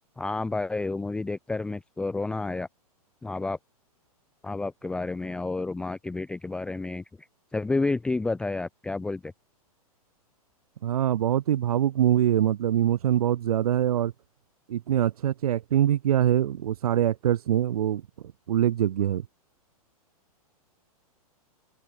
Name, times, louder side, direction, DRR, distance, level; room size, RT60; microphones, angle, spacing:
voice 1, 0.2-2.7 3.2-3.6 4.4-7.0 7.5-9.3, left 3 dB, 5° left, 0.4 m, -30 dB
voice 2, 10.8-14.1 14.7-18.0 18.5-19.2, right 11 dB, 75° right, 0.4 m, -24 dB
open air
hypercardioid pair, 110°, 19 cm